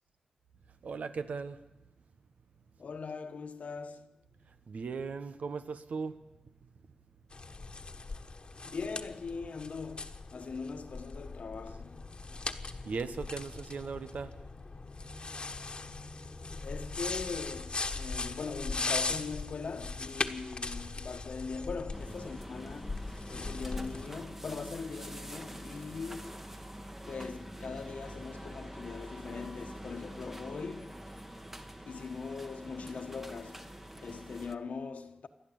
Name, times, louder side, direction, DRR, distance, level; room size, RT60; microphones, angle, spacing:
voice 1, 0.8-1.7 4.4-6.3 12.8-14.5 31.4-31.5, right 5 dB, 80° right, 1.2 m, -38 dB
voice 2, 2.8-4.1 8.6-12.0 16.6-26.5 27.1-31.0 31.9-35.3, left 4 dB, 70° left, 1.3 m, -41 dB
sound 1, 7.3-24.1, left 3 dB, 40° left, 1.4 m, -39 dB
sound 2, 21.9-34.6, equal, 15° right, 1.3 m, -45 dB
28.0 x 10.5 x 9.0 m
wide cardioid pair, 85°, 2 cm